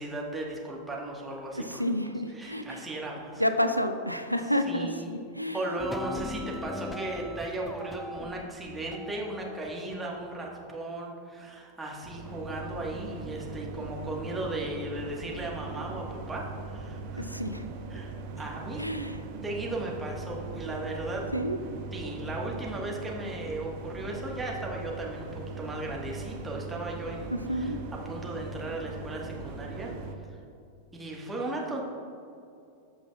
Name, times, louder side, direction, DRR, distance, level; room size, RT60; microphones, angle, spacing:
voice 1, 0.0-1.8 2.4-3.4 4.7-5.1 5.5-17.3 17.9-18.8 19.4-21.2 21.9-27.7 28.0-29.9 30.3-30.4 30.9-31.8, right 2 dB, 10° right, -2 dB, 1.4 m, -36 dB
voice 2, 1.5-2.8 3.4-5.6 17.2-17.7 18.8-19.2 21.3-21.6 27.3-27.8, equal, 90° left, 8 dB, 0.4 m, -30 dB
sound 1, 5.8-10.8, left 2 dB, 10° left, 0.4 m, -40 dB
sound 2, 12.0-30.1, right 3 dB, 45° right, 0.7 m, -40 dB
13.5 x 5.5 x 2.3 m, 2.6 s
figure-of-eight pair, 90°, 0 cm